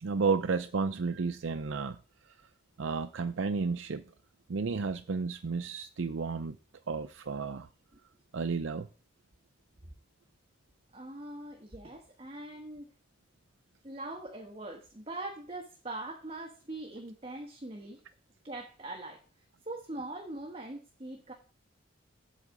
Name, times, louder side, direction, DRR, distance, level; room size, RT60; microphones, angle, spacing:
voice 1, 0.0-2.0 2.8-4.0 4.5-6.6 6.9-7.7 8.3-8.9, right 4 dB, 90° right, 0.5 m, -32 dB
voice 2, 10.9-12.9 13.8-18.0 18.4-19.2 19.6-21.3, right 2 dB, 30° right, 1.2 m, -42 dB
8.3 x 4.9 x 7.4 m
head